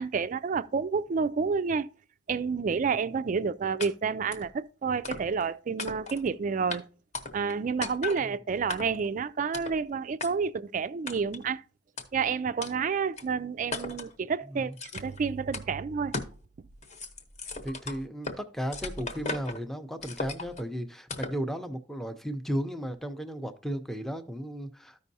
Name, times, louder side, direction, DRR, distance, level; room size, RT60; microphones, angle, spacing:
voice 1, 0.0-1.9 2.3-6.9 7.3-11.6 12.1-16.2, right 5 dB, 40° right, 0.3 m, -29 dB
sound 1, 3.8-3.9 4.3-4.5 5.0-5.5 5.8-6.3 6.7-6.8 7.1-7.6 7.8-8.2 8.7-9.1 9.5-9.8 10.2-10.3 11.1-11.4 12.0-12.1 12.6-12.7 13.2-13.3 13.7-14.1 14.8-15.2 15.5-15.7 16.1-16.4 16.7-18.4 18.7-19.6 20.0-20.6 21.1-21.4, left 3 dB, 35° left, 1.0 m, -37 dB
voice 2, 17.6-25.0, equal, ahead, 0.6 m, -35 dB
13.5 x 5.3 x 2.7 m
head